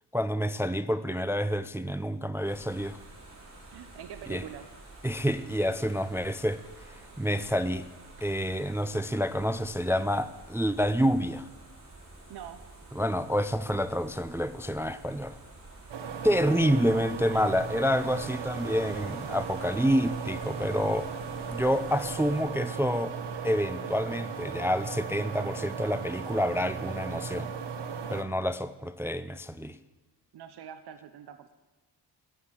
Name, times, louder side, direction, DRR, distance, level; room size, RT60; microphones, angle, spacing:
voice 1, 0.1-3.0 4.3-4.4 5.0-6.6 7.2-7.8 8.2-11.5 13.0-15.4 16.2-21.1 21.5-23.1 23.4-27.5 28.1-29.8, equal, 5° right, 12 dB, 0.3 m, -28 dB
sound 1, 2.4-22.4, right 2 dB, 40° right, 4.5 m, -49 dB
voice 2, 3.7-4.7 12.3-12.6 16.3-16.7 17.3-17.7 30.3-31.5, right 9 dB, 70° right, 9 dB, 0.8 m, -44 dB
sound 2, 15.9-28.2, right 6 dB, 85° right, 1.3 m, -36 dB
13.5 x 8.2 x 7.4 m, 1.1 s
wide cardioid pair, 120°, 41 cm